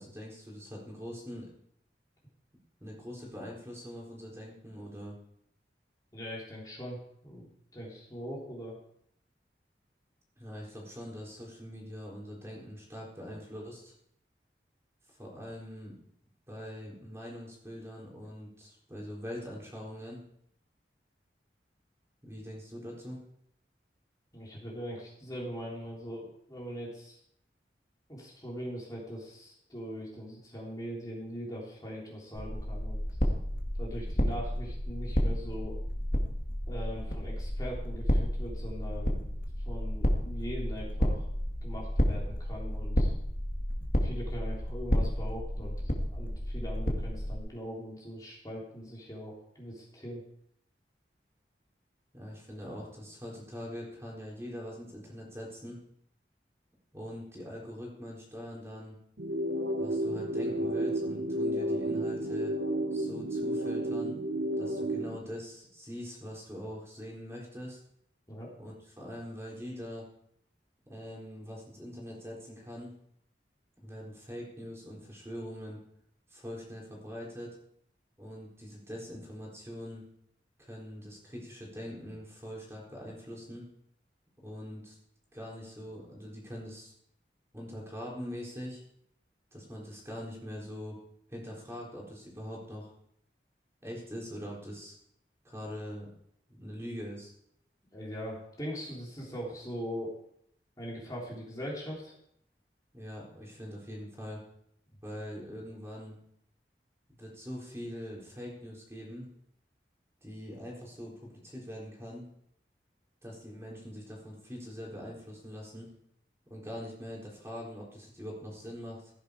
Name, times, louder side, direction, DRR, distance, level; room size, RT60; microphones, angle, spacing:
voice 1, 0.0-1.5 2.8-5.2 10.4-13.9 15.1-16.0 16.5-20.2 22.2-23.2 52.1-55.8 56.9-59.0 59.8-62.5 62.9-64.2 64.6-67.8 68.6-70.1 70.9-73.0 73.8-75.8 76.3-77.6 78.2-80.1 80.6-83.7 84.4-85.0 85.3-86.9 87.5-88.8 89.5-91.0 91.3-92.9 93.8-94.9 95.4-96.1 96.5-97.3 102.9-104.4 105.0-106.2 107.2-109.3 110.2-112.3 113.2-115.9 116.5-119.1, equal, 15° right, -3 dB, 4.0 m, -43 dB
voice 2, 6.1-8.8 24.3-27.2 28.1-33.0 33.8-35.8 36.7-39.2 39.6-41.3 41.6-43.1 44.0-45.8 46.1-50.2 68.3-68.5 97.9-100.2 100.8-102.1, equal, 20° left, -4 dB, 3.5 m, -41 dB
sound 1, 32.4-47.4, equal, 50° left, 2.1 m, -31 dB
sound 2, 59.2-65.2, right 1 dB, 80° right, 1.0 m, -31 dB
15.5 x 10.5 x 4.9 m, 0.70 s
head